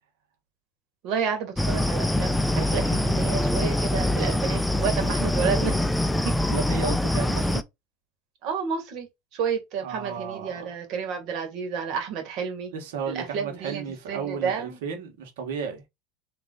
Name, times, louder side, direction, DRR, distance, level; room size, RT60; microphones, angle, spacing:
voice 1, 1.0-5.9 6.2-6.6 8.4-9.1 9.3-12.7 13.1-14.8, right 6 dB, 50° right, 2.0 m, -30 dB
sound 1, 1.6-7.6, left 1 dB, 5° left, 0.4 m, -24 dB
voice 2, 6.5-7.6 9.8-10.7 12.7-15.8, right 6 dB, 75° right, 1.7 m, -33 dB
3.9 x 3.2 x 3.9 m
supercardioid pair, 115°, 0 cm